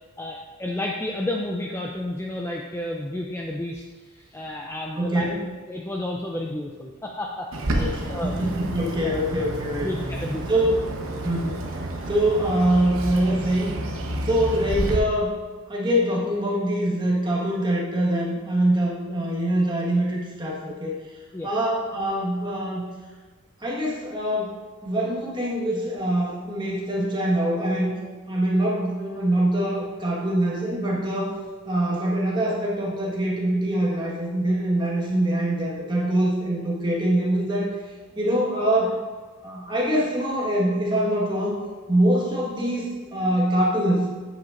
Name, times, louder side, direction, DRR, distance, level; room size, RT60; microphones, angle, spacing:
voice 1, 0.2-5.3 5.7-8.4 9.0-9.2 9.8-10.4 21.3-21.5, left 1 dB, 10° left, 0 dB, 0.3 m, -31 dB
voice 2, 4.9-5.4 7.8-9.9 10.5-10.9 11.2-13.7 14.2-15.3 15.7-20.9 21.4-22.8 23.6-24.5 24.8-27.9 28.3-31.4 31.7-37.8 38.1-39.0 39.4-41.6 41.9-44.1, right 1 dB, 20° right, -4 dB, 1.4 m, -24 dB
Bird, 7.5-15.0, right 1 dB, 70° right, 0.9 m, -30 dB
8.8 x 7.7 x 2.5 m, 1.4 s
head